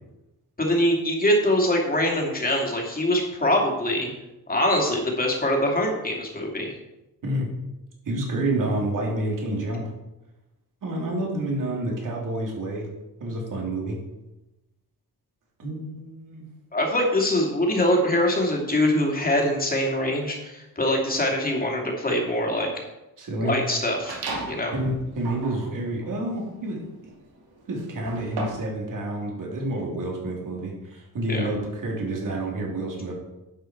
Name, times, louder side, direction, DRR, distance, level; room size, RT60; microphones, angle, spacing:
voice 1, 0.6-4.1 4.5-6.7 16.7-22.7 23.4-24.7 31.3-31.5, left 1 dB, 20° left, 0 dB, 2.7 m, -23 dB
voice 2, 8.1-9.8 10.8-12.9 13.2-14.0 15.6-16.5 23.2-23.5 24.7-26.8 27.7-33.1, right 1 dB, 55° right, -1 dB, 3.4 m, -29 dB
sound 1, 24.1-24.7 25.2-28.8, right 2 dB, 70° right, 2.3 m, -35 dB
11.0 x 7.9 x 4.6 m, 0.97 s
cardioid pair, 125°, 39 cm